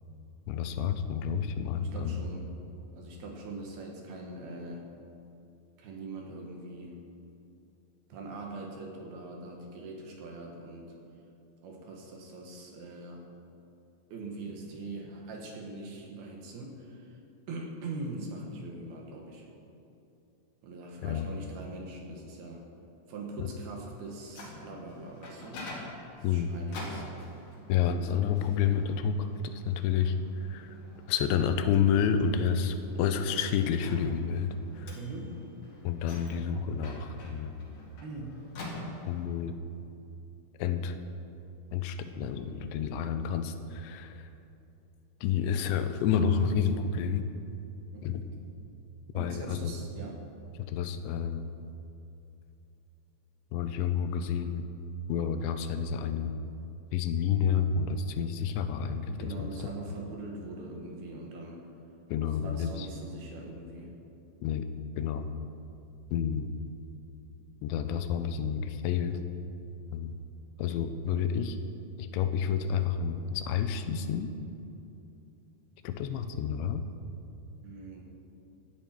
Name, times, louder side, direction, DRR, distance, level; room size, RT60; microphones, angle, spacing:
voice 1, 0.5-2.3 21.0-21.3 23.4-23.5 26.2-26.6 27.7-30.2 30.4-30.8 31.1-35.0 35.8-37.6 39.1-39.6 40.6-41.0 41.7-44.3 45.2-47.3 48.0-48.2 49.1-49.7 50.7-51.4 53.5-54.7 55.1-56.3 56.9-59.5 62.1-62.9 64.4-64.7 65.0-65.3 66.1-66.5 67.6-69.2 69.9-70.2 70.6-71.6 72.0-74.3 75.8-76.8, left 7 dB, 90° left, 9 dB, 3.0 m, -29 dB
voice 2, 1.8-2.4 2.9-4.8 5.8-7.0 8.1-10.9 11.6-13.2 14.1-17.2 17.5-19.5 20.6-22.6 23.1-25.6 26.2-27.0 27.4-27.6 34.9-35.4 38.0-38.4 47.9-48.2 49.1-50.2 59.2-61.7 62.4-63.9 77.6-78.0, right 2 dB, 65° right, 0 dB, 3.1 m, -42 dB
Microwave oven, 24.0-39.4, left 1 dB, 50° left, 3.1 m, -47 dB
17.0 x 11.0 x 4.5 m, 2.7 s
omnidirectional pair, 5.1 m